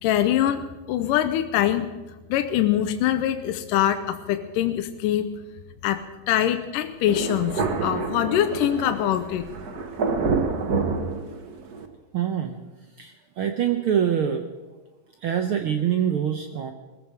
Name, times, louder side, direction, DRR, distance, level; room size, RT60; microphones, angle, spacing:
voice 1, 0.0-1.9 2.3-5.3 5.8-9.4, left 11 dB, 85° left, 8 dB, 2.4 m, -23 dB
Thunder, 7.1-11.9, right 4 dB, 60° right, 1.0 m, -28 dB
voice 2, 12.1-12.6 13.0-14.5 15.2-16.7, right 9 dB, 85° right, 6 dB, 1.1 m, -25 dB
20.5 x 14.5 x 4.7 m, 1.2 s
omnidirectional pair, 3.7 m